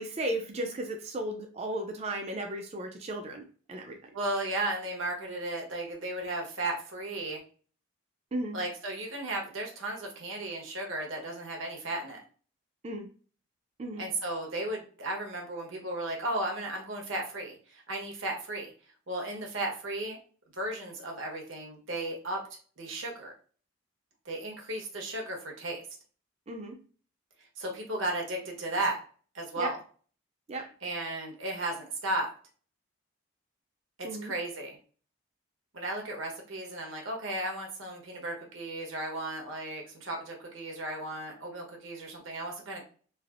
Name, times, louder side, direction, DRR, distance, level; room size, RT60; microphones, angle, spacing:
voice 1, 0.0-3.4 3.7-4.0 8.3-8.6 12.8-13.1 13.8-14.1 26.5-26.8 29.6-29.7 30.5-30.7 34.0-34.3, right 1 dB, 30° right, 4 dB, 0.4 m, -35 dB
voice 2, 4.1-7.4 8.5-12.2 14.0-18.7 19.1-20.2 20.6-22.4 22.8-23.3 24.2-25.8 27.6-29.0 29.3-29.8 30.8-32.3 34.0-34.8 35.7-42.8, right 1 dB, 70° right, 1 dB, 0.9 m, -35 dB
3.3 x 2.4 x 2.4 m, 0.40 s
head